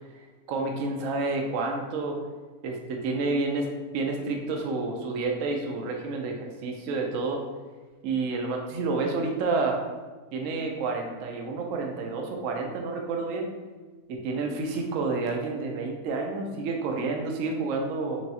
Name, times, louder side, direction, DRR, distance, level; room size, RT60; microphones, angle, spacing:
voice 1, 0.5-2.2 2.6-3.7 3.9-7.4 8.0-9.8 10.3-13.5 14.2-18.2, right 3 dB, 65° right, 2 dB, 0.9 m, -29 dB
4.6 x 3.0 x 2.8 m, 1.3 s
omnidirectional pair, 1.6 m